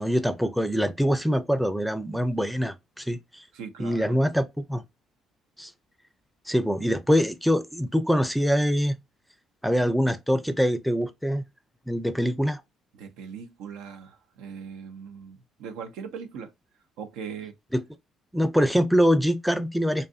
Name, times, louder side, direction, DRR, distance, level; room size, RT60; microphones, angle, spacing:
voice 1, 0.0-3.4 3.8-4.8 5.6-5.7 6.5-9.0 9.6-11.4 11.9-12.6 17.7-17.8 18.3-20.1, equal, ahead, 0.5 m, -24 dB
voice 2, 3.5-4.2 12.9-16.5 17.0-17.5, right 6 dB, 80° right, 0.5 m, -40 dB
2.6 x 2.4 x 2.4 m
supercardioid pair, 70°, 0 cm